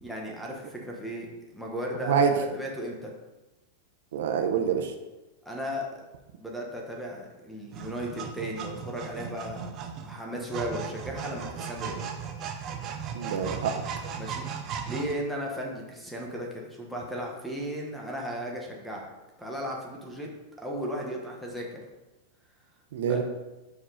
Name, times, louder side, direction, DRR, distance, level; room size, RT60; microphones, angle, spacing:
voice 1, 0.0-3.1 5.4-6.0 6.4-9.7 10.0-12.0 14.2-14.5 14.9-19.1 19.4-20.3 20.6-21.8 23.1-23.2, equal, ahead, -1 dB, 1.0 m, -35 dB
voice 2, 4.1-4.9 13.1-13.7 22.9-23.2, right 7 dB, 75° right, 5 dB, 0.8 m, -25 dB
sound 1, 7.7-15.1, right 6 dB, 30° right, 0.6 m, -37 dB
5.7 x 5.0 x 4.9 m, 1.1 s
supercardioid pair, 165°, 0 cm